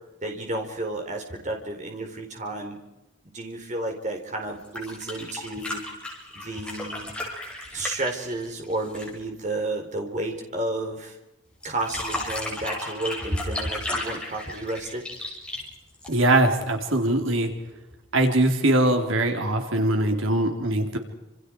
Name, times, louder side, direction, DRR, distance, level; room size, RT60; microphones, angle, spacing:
voice 1, 0.2-2.8 3.3-5.8 6.3-7.1 7.7-11.2 11.6-15.0, right 2 dB, 35° right, 2 dB, 4.3 m, -32 dB
sound 1, 4.5-9.2 11.6-16.5 17.9-18.0, left 1 dB, 5° left, 6.4 m, -33 dB
voice 2, 16.1-17.5 18.1-21.0, right 1 dB, 80° right, 3 dB, 3.7 m, -22 dB
29.0 x 28.0 x 4.8 m, 0.90 s
head